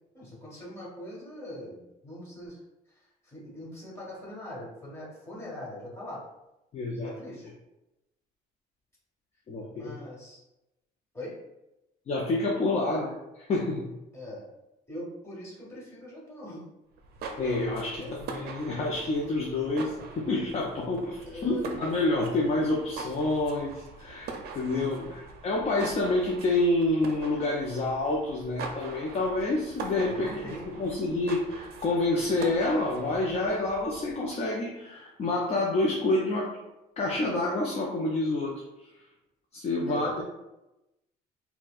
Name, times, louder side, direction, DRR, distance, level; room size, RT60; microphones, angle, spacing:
voice 1, 0.1-2.6 2.9-6.2 7.0-7.5 9.7-10.4 11.1-11.3 14.1-14.4 14.9-16.6 17.9-18.1 21.2-21.8 24.7-25.1 30.0-30.7 39.9-40.2, left 1 dB, 15° left, -6 dB, 1.5 m, -42 dB
voice 2, 6.7-7.1 9.5-9.9 12.1-13.9 17.4-24.3 24.5-36.5 37.0-38.5 39.5-40.1, left 2 dB, 40° left, -3 dB, 0.6 m, -28 dB
sound 1, 16.9-34.3, right 4 dB, 70° right, 0.5 m, -42 dB
4.2 x 2.2 x 2.4 m, 0.95 s
cardioid pair, 110°, 17 cm